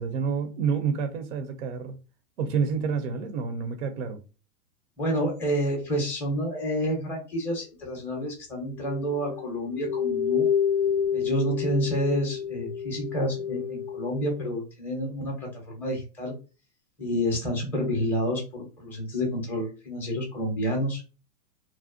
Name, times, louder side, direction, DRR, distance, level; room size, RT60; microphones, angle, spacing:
voice 1, 0.0-2.0 2.4-4.2, right 6 dB, 50° right, 0.5 m, -28 dB
voice 2, 5.0-10.5 11.1-16.3 17.0-21.0, equal, 5° left, 0.5 m, -29 dB
sound 1, 8.8-14.4, left 7 dB, 55° left, 0.5 m, -29 dB
2.5 x 2.1 x 2.4 m
hypercardioid pair, 140°, 47 cm